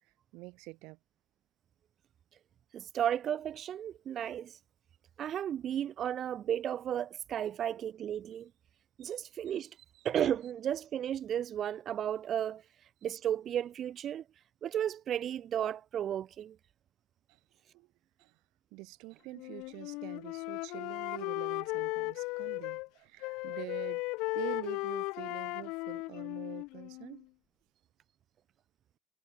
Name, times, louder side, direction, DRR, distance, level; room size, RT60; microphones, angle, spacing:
voice 1, 0.3-1.0 9.0-9.1 9.5-9.6 9.9-10.1 17.3-17.4 17.7-17.9 18.2-18.3 18.7-24.0 24.3-27.3, right 25 dB, 80° right, 1.9 m, -46 dB
voice 2, 2.7-4.6 5.2-8.5 9.0-9.7 10.0-12.6 13.0-14.2 14.6-16.6, right 10 dB, 40° right, 0.3 m, -34 dB
Wind instrument woodwind instrument, 19.3-22.9 23.2-27.2, left 24 dB, 80° left, 1.2 m, -36 dB
cardioid pair, 155°, 0 cm